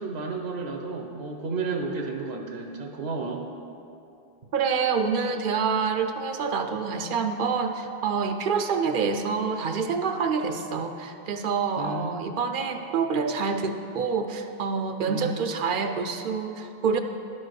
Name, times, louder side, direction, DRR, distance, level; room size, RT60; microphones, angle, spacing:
voice 1, 0.0-3.4 11.8-12.1 15.0-15.4, right 3 dB, 85° right, 2 dB, 1.1 m, -32 dB
voice 2, 4.5-17.0, right 5 dB, 60° right, 7 dB, 0.7 m, -27 dB
11.0 x 4.6 x 6.4 m, 2.6 s
omnidirectional pair, 1.0 m